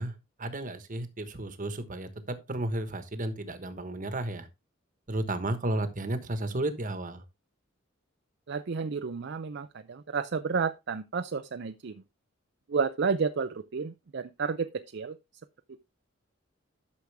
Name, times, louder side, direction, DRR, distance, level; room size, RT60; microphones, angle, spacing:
voice 1, 0.0-4.5 5.1-7.2, right 1 dB, 45° right, 1.3 m, -33 dB
voice 2, 8.5-11.9 12.7-15.2, right 5 dB, 60° right, 0.5 m, -31 dB
12.0 x 6.3 x 3.4 m
head